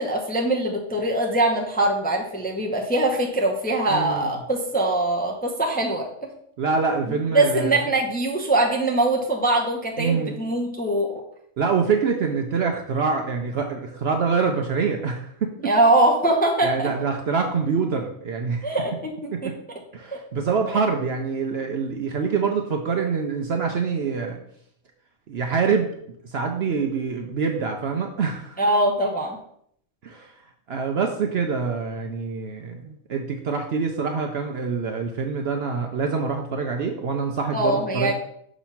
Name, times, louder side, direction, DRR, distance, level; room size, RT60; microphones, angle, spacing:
voice 1, 0.0-6.1 7.1-11.1 15.6-16.9 18.6-19.5 28.6-29.4 37.5-38.1, right 2 dB, 10° left, -1 dB, 0.6 m, -22 dB
voice 2, 3.9-4.3 6.6-7.8 10.0-10.4 11.6-15.7 16.6-18.7 19.3-19.5 19.9-24.4 25.3-25.9 26.2-28.6 30.0-30.3 30.7-38.1, right 5 dB, 60° right, 3 dB, 0.7 m, -25 dB
6.1 x 3.0 x 5.7 m, 0.70 s
omnidirectional pair, 1.4 m